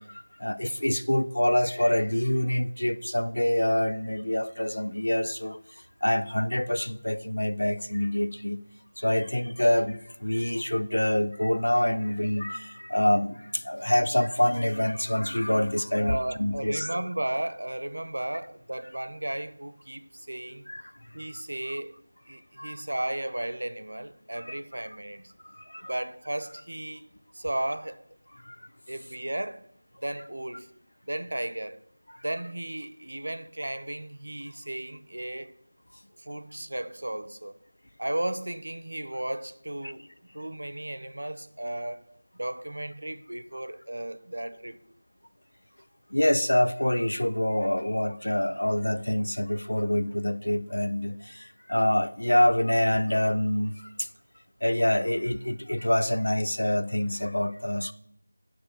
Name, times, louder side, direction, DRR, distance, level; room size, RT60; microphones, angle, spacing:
voice 1, 0.0-5.6 6.0-8.6 9.0-17.0 20.7-20.9 22.6-22.8 24.4-24.6 25.5-25.9 28.4-28.7 32.1-32.2 46.1-54.1 54.6-57.9, left 1 dB, 75° left, 0.7 m, -26 dB
voice 2, 16.0-20.7 21.1-22.0 22.3-25.3 25.8-28.0 28.9-29.6 30.0-30.7 31.0-31.8 32.2-35.5 36.2-37.6 38.0-40.1 40.3-42.0 42.3-44.8, right 1 dB, 65° right, 0.8 m, -34 dB
8.1 x 6.2 x 6.2 m
figure-of-eight pair, 170°, 0 cm